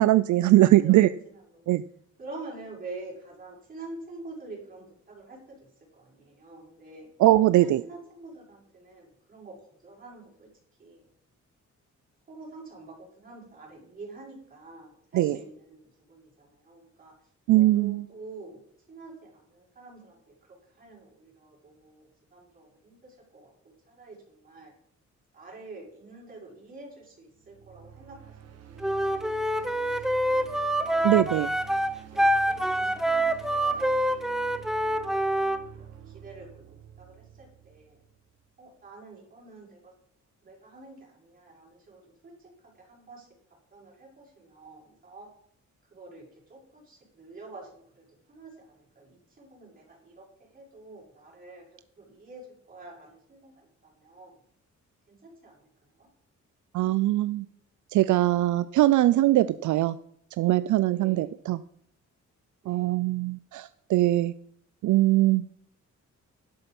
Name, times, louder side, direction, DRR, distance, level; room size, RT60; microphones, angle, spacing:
voice 1, 0.0-1.1 1.7-1.8 7.2-7.8 15.1-15.4 17.5-18.0 31.0-31.5 56.7-57.5 57.9-60.0 60.4-61.6 62.7-64.3 64.8-65.4, right 15 dB, 75° right, 15 dB, 0.5 m, -21 dB
voice 2, 0.6-1.7 2.2-7.1 7.5-9.6 9.8-10.5 10.8-11.0 12.3-17.1 17.5-18.6 18.9-24.7 25.3-31.1 32.0-35.2 35.7-36.6 37.0-38.0 38.6-39.9 40.4-43.3 43.7-45.3 45.9-51.6 52.0-54.4 55.1-56.1 60.9-61.4 62.6-63.0, right 3 dB, 30° right, -4 dB, 6.1 m, -47 dB
sound 1, 27.3-38.4, right 9 dB, 55° right, 1.4 m, -48 dB
Wind instrument woodwind instrument, 28.8-35.6, right 1 dB, ahead, 0.6 m, -26 dB
11.5 x 11.0 x 5.4 m, 0.68 s
wide cardioid pair, 180°, 30 cm